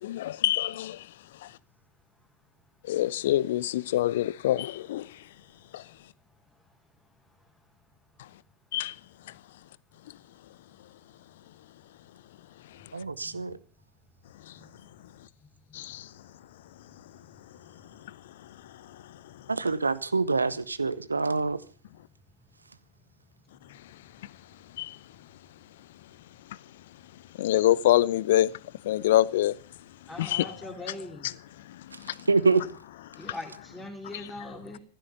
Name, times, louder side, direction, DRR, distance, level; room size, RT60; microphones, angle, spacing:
voice 1, 0.0-1.1 1.4-1.5 2.9-5.2 5.7-5.8 8.7-9.0 14.5-14.6 15.7-16.1 18.0-18.2 18.4-19.3 24.8-25.0 27.4-28.5 28.8-29.6 30.2-30.6 31.2-31.3 31.7-32.3 33.1-33.3 34.1-34.3, left 14 dB, 55° left, 0.6 m, -26 dB
voice 2, 12.9-13.6 19.5-21.6 32.3-32.6, right 4 dB, 80° right, 0.9 m, -25 dB
voice 3, 30.1-31.3 33.2-34.8, left 2 dB, 5° left, 3.3 m, -41 dB
15.0 x 12.0 x 6.8 m
figure-of-eight pair, 90°, 0 cm